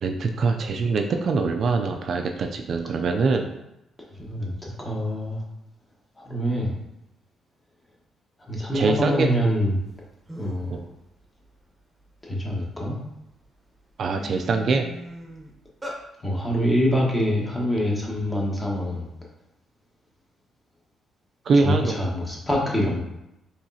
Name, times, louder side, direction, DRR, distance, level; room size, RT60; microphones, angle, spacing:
voice 1, 0.0-3.5 8.7-9.3 10.7-10.8 14.0-14.9 21.5-22.0, right 4 dB, 55° right, 5 dB, 0.4 m, -23 dB
voice 2, 4.2-5.4 6.2-6.7 8.5-9.8 10.4-10.7 12.2-13.0 16.2-19.1 21.6-23.0, equal, 15° left, -3 dB, 1.3 m, -25 dB
sound 1, 9.9-10.0 10.3-10.7 11.2-12.7 13.3-13.5 13.8-16.0, equal, 15° right, 1.0 m, -39 dB
4.7 x 3.1 x 2.8 m, 0.87 s
cardioid pair, 90°, 0 cm